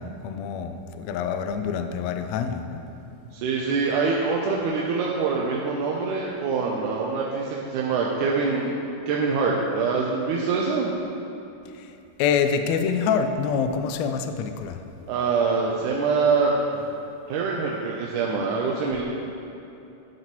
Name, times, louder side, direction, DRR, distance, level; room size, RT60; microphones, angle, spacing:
voice 1, 0.0-2.8 11.8-11.9 12.2-14.8, left 6 dB, 85° left, 7 dB, 1.5 m, -26 dB
voice 2, 3.3-8.7 9.1-10.9 15.1-16.8 17.3-19.0, right 4 dB, 80° right, -3 dB, 2.2 m, -24 dB
10.5 x 10.5 x 3.1 m, 2.8 s
omnidirectional pair, 3.7 m